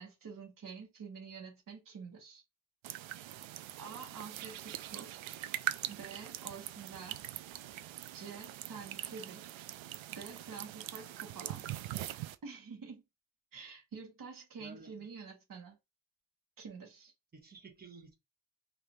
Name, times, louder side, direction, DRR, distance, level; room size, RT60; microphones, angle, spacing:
voice 1, 0.0-2.4 3.1-3.2 3.8-5.1 5.9-7.4 8.1-9.6 10.1-11.6 12.4-13.0 13.5-15.8 16.6-17.1, right 5 dB, 45° right, 1.3 m, -48 dB
sound 1, 2.8-12.4, right 14 dB, 85° right, 0.5 m, -42 dB
voice 2, 14.6-15.1 17.3-18.1, right 3 dB, 20° right, 1.1 m, -53 dB
5.0 x 2.7 x 3.0 m
wide cardioid pair, 170°, 45 cm